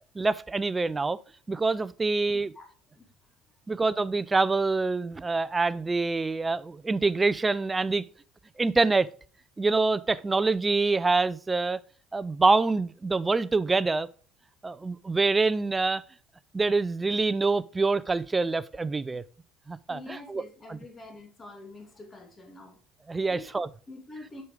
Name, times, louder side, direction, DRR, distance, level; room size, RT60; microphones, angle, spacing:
voice 1, 0.1-1.2 1.5-2.5 3.7-8.0 8.6-9.1 9.6-11.8 12.1-14.1 14.6-16.0 16.5-19.2 19.7-20.4 20.7-20.8 23.1-23.7, right 3 dB, 20° right, 0.4 m, -25 dB
voice 2, 2.3-2.7 2.9-3.3 19.9-22.8 23.3-23.5 23.9-24.4, left 2 dB, 25° left, 2.1 m, -46 dB
6.9 x 5.0 x 4.8 m
supercardioid pair, 95°, 0 cm